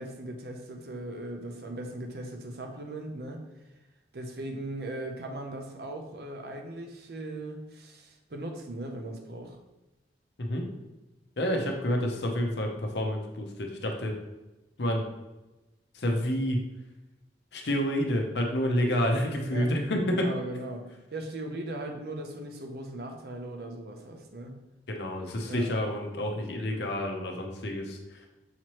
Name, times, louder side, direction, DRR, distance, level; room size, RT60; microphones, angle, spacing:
voice 1, 0.0-3.4 4.1-9.6 19.5-19.7 20.0-24.6 25.4-25.7, right 1 dB, 60° right, 3 dB, 0.6 m, -38 dB
voice 2, 11.4-14.2 14.8-15.0 15.9-16.6 17.5-20.3 24.9-28.0, equal, 70° left, 2 dB, 0.7 m, -29 dB
5.8 x 3.0 x 3.0 m, 1.0 s
head